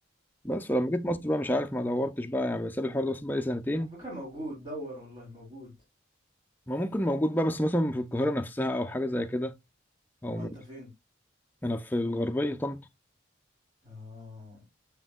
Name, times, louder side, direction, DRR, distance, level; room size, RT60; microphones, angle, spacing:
voice 1, 0.4-3.9 6.7-9.5 10.2-10.5 11.6-12.8, left 1 dB, 10° left, 0.5 m, -29 dB
voice 2, 4.0-5.7 10.3-10.9 13.8-14.6, equal, 30° right, 3.5 m, -41 dB
6.9 x 5.9 x 2.3 m
head